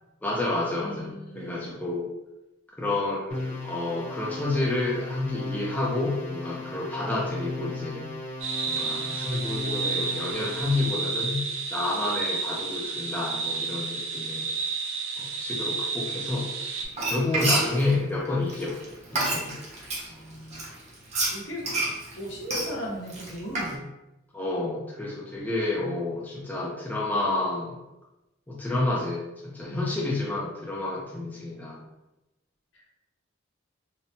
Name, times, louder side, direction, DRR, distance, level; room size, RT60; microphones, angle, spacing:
voice 1, 0.2-2.1 2.8-8.1 8.7-11.4 11.7-14.5 15.2-16.5 17.0-18.8 19.1-19.6 24.3-27.7 28.5-31.8, left 2 dB, 10° left, -5 dB, 0.4 m, -29 dB
voice 2, 0.8-1.7 20.1-20.6 21.3-21.7 22.1-23.8 29.7-30.0 32.7-32.9, equal, 70° left, -3 dB, 0.8 m, -37 dB
sound 1, 3.3-10.9, left 2 dB, 35° left, 0.9 m, -36 dB
sound 2, 8.4-16.9, right 4 dB, 80° right, 0.4 m, -31 dB
Frying (food), 16.9-20.1 20.5-23.7, right 2 dB, 35° right, 0.6 m, -29 dB
2.8 x 2.1 x 2.7 m, 0.96 s
head